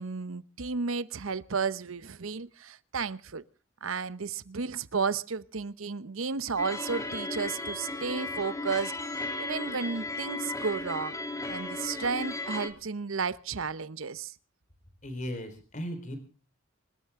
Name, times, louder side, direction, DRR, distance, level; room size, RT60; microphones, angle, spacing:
voice 1, 0.0-3.4 3.8-11.1 11.5-14.3, right 5 dB, 80° right, 0.8 m, -33 dB
sound 1, 6.6-12.7, left 2 dB, 15° left, 3.0 m, -35 dB
voice 2, 15.0-16.2, equal, 35° left, 4.0 m, -36 dB
26.0 x 13.5 x 3.6 m
head